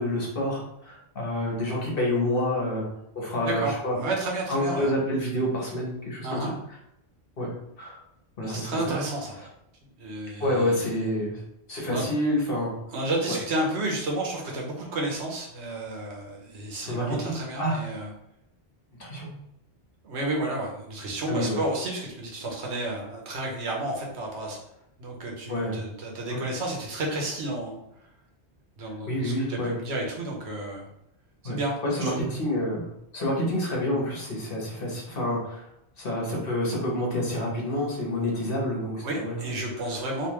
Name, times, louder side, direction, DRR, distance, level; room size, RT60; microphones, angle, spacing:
voice 1, 0.0-2.9 3.1-4.0 4.5-6.4 7.4-7.5 7.8-8.0 8.4-9.0 10.4-11.4 11.7-12.7 16.8-17.8 19.0-19.3 21.3-21.6 25.5-25.8 26.3-26.4 28.8-29.7 31.4-31.6 31.8-32.9 33.1-35.7 36.0-39.5, left 1 dB, 60° left, -3 dB, 1.3 m, -28 dB
voice 2, 3.4-4.9 6.2-6.5 8.4-9.4 10.0-10.8 11.9-12.1 12.9-18.1 20.0-24.6 25.0-27.8 28.8-30.9 31.4-31.7 32.0-32.2 39.0-40.3, right 2 dB, 85° right, -1 dB, 1.2 m, -31 dB
3.4 x 2.8 x 3.0 m, 0.80 s
omnidirectional pair, 1.1 m